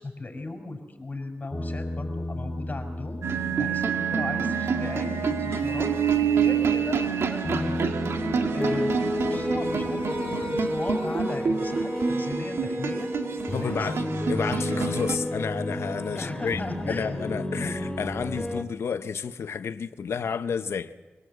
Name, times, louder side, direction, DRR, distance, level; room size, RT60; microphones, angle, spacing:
voice 1, 0.0-8.1 8.5-13.1 13.6-14.6 16.2-17.9, left 2 dB, 40° left, 5.6 m, -37 dB
sound 1, 1.5-18.6, left 1 dB, 15° left, 3.3 m, -32 dB
sound 2, 3.2-15.2, right 6 dB, 80° right, 1.9 m, -27 dB
voice 2, 13.5-14.0 14.3-16.6 16.9-20.9, left 6 dB, 80° left, 1.0 m, -31 dB
24.5 x 17.5 x 8.2 m
cardioid pair, 55°, 4 cm